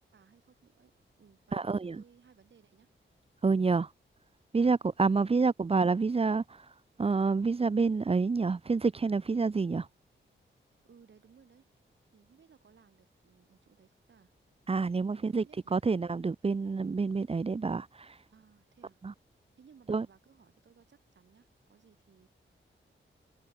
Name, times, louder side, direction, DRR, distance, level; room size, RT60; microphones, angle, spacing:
voice 1, 0.1-0.9 1.2-2.9 10.8-11.7 12.1-14.3 15.1-15.8 18.3-19.0 19.6-22.3, right 6 dB, 65° right, 6.7 m, -61 dB
voice 2, 1.5-2.0 3.4-3.9 4.5-9.9 14.7-15.4 15.7-18.2 19.0-19.1 19.9-20.1, right 4 dB, 30° right, 0.8 m, -28 dB
open air
wide cardioid pair, 135°, 20 cm